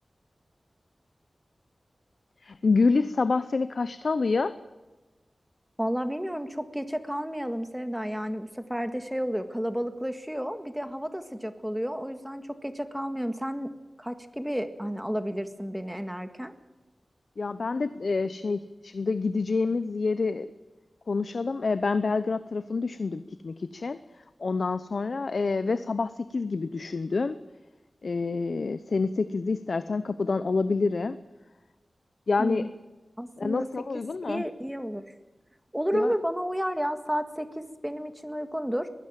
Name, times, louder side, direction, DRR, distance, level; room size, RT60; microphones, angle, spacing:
voice 1, 2.4-4.6 17.4-20.5 21.1-24.0 24.4-27.4 28.0-31.2 32.3-32.7 33.4-34.4 35.9-36.1, left 4 dB, 65° left, 12 dB, 0.7 m, -27 dB
voice 2, 5.8-13.7 14.0-16.5 32.4-32.7 33.2-33.7 34.3-35.0 35.7-38.9, equal, 5° right, 9 dB, 1.7 m, -31 dB
22.0 x 16.0 x 7.5 m, 1.1 s
wide cardioid pair, 95°, 0 cm